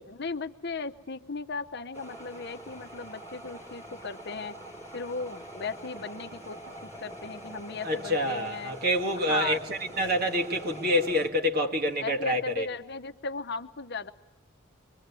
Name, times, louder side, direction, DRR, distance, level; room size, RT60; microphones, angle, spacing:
voice 1, 0.1-4.5 4.9-8.7 9.2-9.6 12.0-14.1, left 4 dB, 50° left, 0.9 m, -36 dB
sound 1, 1.9-11.3, right 1 dB, 15° right, 5.2 m, -44 dB
voice 2, 7.8-12.7, equal, 45° right, 2.2 m, -27 dB
24.5 x 24.0 x 8.4 m
head